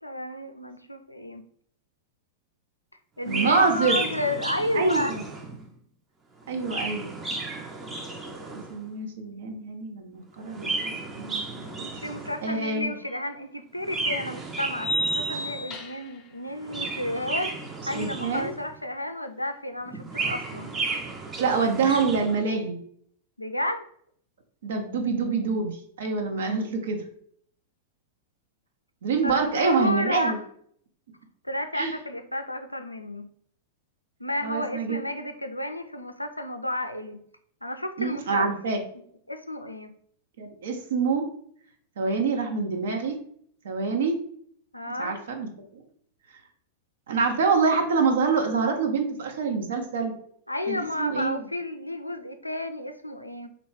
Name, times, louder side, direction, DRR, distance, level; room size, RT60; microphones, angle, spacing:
voice 1, 0.0-1.4 3.2-5.2 12.0-20.7 23.4-23.9 29.2-30.4 31.4-33.3 34.2-37.2 37.6-38.5 39.3-39.9 44.7-45.2 50.5-53.5, left 1 dB, 90° left, 7 dB, 0.4 m, -31 dB
Chirp tweet, 3.2-5.7 6.4-8.8 10.4-12.6 13.8-15.7 16.5-18.8 19.8-22.4, right 3 dB, 15° right, 0.6 m, -34 dB
voice 2, 3.3-4.0 4.7-5.2 6.5-7.1 8.5-11.9 12.4-12.9 17.9-18.5 21.4-22.8 24.6-27.0 29.0-30.4 31.7-31.9 34.4-35.0 38.0-38.8 40.4-41.3 42.0-43.2 43.6-44.1 44.9-45.5 45.7-45.8 47.1-50.1 50.7-51.4, right 4 dB, 60° right, 3 dB, 0.7 m, -26 dB
sound 1, 13.1-13.2 14.8-16.2, right 1 dB, 30° left, 0.6 m, -30 dB
3.1 x 2.8 x 4.4 m, 0.63 s
figure-of-eight pair, 95°, 0 cm